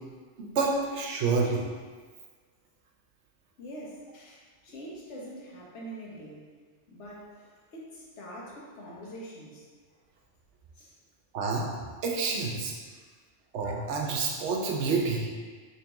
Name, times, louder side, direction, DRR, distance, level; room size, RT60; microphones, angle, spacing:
voice 1, 0.4-1.6 11.3-11.7 12.0-12.7 13.5-15.3, right 4 dB, 75° right, 0 dB, 0.9 m, -28 dB
voice 2, 3.6-6.5 6.9-9.6 10.8-10.9 12.9-13.0, right 1 dB, 85° left, -5 dB, 1.1 m, -44 dB
3.3 x 3.1 x 3.0 m, 1.5 s
omnidirectional pair, 1.2 m